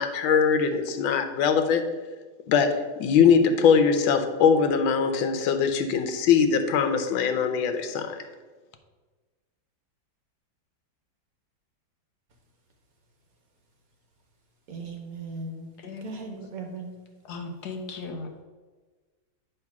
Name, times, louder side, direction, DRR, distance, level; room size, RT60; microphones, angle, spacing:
voice 1, 0.0-1.8 2.5-8.2, left 6 dB, 90° left, 7 dB, 1.5 m, -22 dB
voice 2, 14.7-17.0, right 3 dB, 55° right, 3 dB, 1.2 m, -38 dB
voice 3, 17.3-18.4, left 3 dB, 65° left, 4 dB, 1.2 m, -37 dB
8.8 x 3.3 x 5.9 m, 1.3 s
omnidirectional pair, 2.1 m